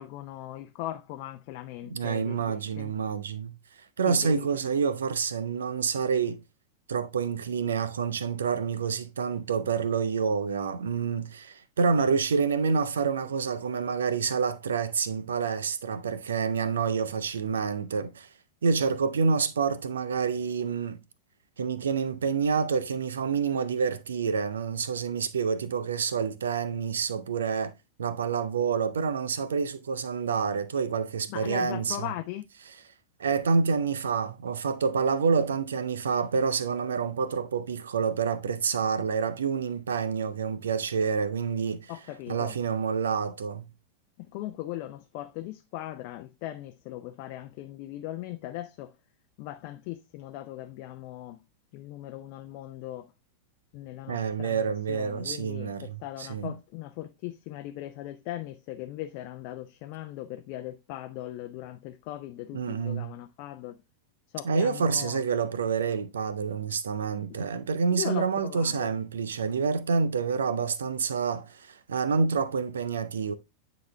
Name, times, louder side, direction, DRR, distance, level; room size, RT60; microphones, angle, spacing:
voice 1, 0.0-2.9 4.0-4.7 31.3-32.5 41.9-42.6 44.2-48.9 49.4-51.4 51.7-53.1 53.7-63.8 64.3-65.2 67.9-68.9, left 14 dB, 45° left, 0.6 m, -39 dB
voice 2, 1.8-3.6 4.0-6.4 6.9-18.3 18.6-21.0 21.6-27.7 28.0-32.1 33.2-41.9 42.3-43.7 54.1-56.5 62.5-63.1 64.4-73.3, right 5 dB, 65° right, 0.7 m, -28 dB
9.4 x 4.2 x 3.2 m
figure-of-eight pair, 90°, 0 cm